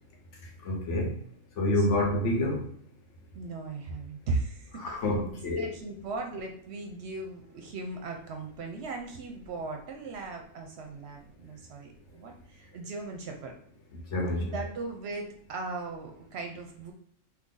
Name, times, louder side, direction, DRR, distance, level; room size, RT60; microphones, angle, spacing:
voice 1, 0.7-1.1 1.6-2.6 4.8-5.7 14.1-14.4, left 1 dB, 70° left, 0 dB, 1.1 m, -27 dB
voice 2, 3.3-13.5 14.4-16.9, right 3 dB, 65° right, 3 dB, 0.8 m, -38 dB
2.7 x 2.6 x 3.7 m, 0.64 s
omnidirectional pair, 1.3 m